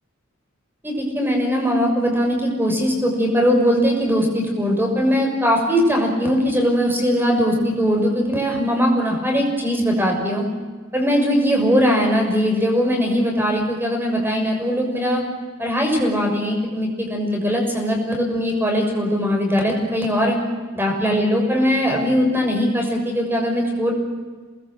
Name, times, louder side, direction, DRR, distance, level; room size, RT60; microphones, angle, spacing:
voice 1, 0.8-10.4 10.9-15.2 15.6-20.4 20.8-23.9, equal, 10° right, 1 dB, 6.1 m, -20 dB
27.5 x 20.5 x 7.7 m, 1.4 s
head